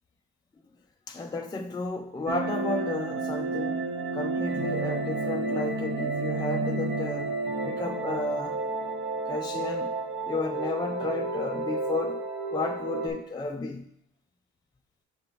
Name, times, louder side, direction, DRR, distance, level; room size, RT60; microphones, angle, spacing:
voice 1, 1.1-7.3 7.7-8.6 9.3-9.9 10.3-12.2 12.5-13.8, left 2 dB, 15° left, 3 dB, 0.4 m, -32 dB
sound 1, 2.3-13.1, right 3 dB, 50° right, 1.1 m, -31 dB
6.9 x 2.9 x 5.2 m, 0.73 s
cardioid pair, 90°, 30 cm